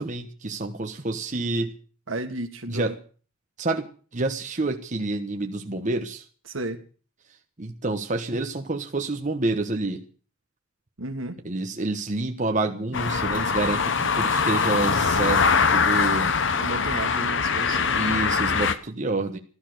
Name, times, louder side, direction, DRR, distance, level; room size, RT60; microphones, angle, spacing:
voice 1, 0.0-1.7 2.7-2.9 3.6-3.9 4.1-6.2 7.6-10.0 11.4-15.4 15.7-16.3 17.9-19.4, right 2 dB, 40° right, 4 dB, 1.2 m, -28 dB
voice 2, 2.1-3.0 6.5-6.8 11.0-11.4 16.5-18.0, right 2 dB, 75° right, 6 dB, 1.9 m, -33 dB
sound 1, 12.9-18.7, left 5 dB, 65° left, 1.1 m, -22 dB
14.5 x 13.0 x 6.5 m, 0.41 s
head